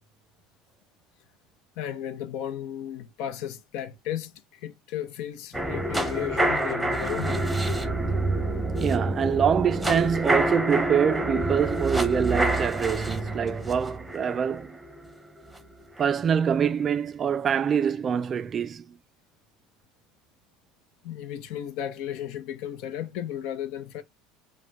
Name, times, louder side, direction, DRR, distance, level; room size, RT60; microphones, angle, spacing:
voice 1, 1.8-7.5 21.0-24.0, left 10 dB, 70° left, 0.7 m, -34 dB
sound 1, 5.5-15.6 16.0-16.1, right 1 dB, 5° right, 0.8 m, -27 dB
voice 2, 8.8-14.8 16.0-18.8, right 7 dB, 30° right, 0.3 m, -25 dB
4.9 x 2.1 x 3.4 m
supercardioid pair, 120°, 0 cm